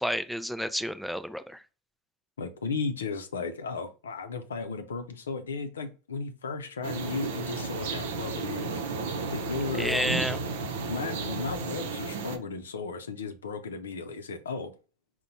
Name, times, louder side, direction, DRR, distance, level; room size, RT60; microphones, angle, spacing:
voice 1, 0.0-1.6 9.8-10.4, equal, ahead, 0.4 m, -30 dB
voice 2, 2.4-8.8 9.3-10.2 10.9-14.7, left 4 dB, 90° left, 0.6 m, -35 dB
sound 1, 6.8-12.4, right 4 dB, 75° right, 0.6 m, -33 dB
4.0 x 2.2 x 4.2 m
hypercardioid pair, 90°, 0 cm